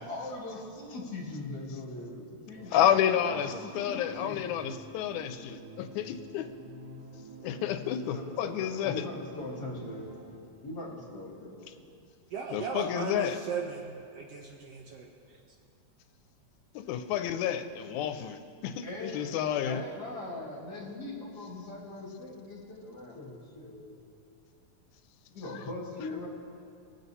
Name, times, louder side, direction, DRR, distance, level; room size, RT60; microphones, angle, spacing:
voice 1, 0.1-4.6 8.1-10.2 10.6-11.9 18.8-24.0 25.3-26.3, left 2 dB, 40° left, -3 dB, 1.7 m, -41 dB
sound 1, 2.5-10.4, right 2 dB, 55° right, 2.0 m, -48 dB
voice 2, 2.7-6.4 7.4-8.9 12.5-13.4 16.8-19.8, left 10 dB, 90° left, 8 dB, 2.0 m, -30 dB
voice 3, 12.3-15.4, right 5 dB, 70° right, 0 dB, 1.6 m, -37 dB
22.5 x 7.8 x 2.7 m, 2.4 s
omnidirectional pair, 3.4 m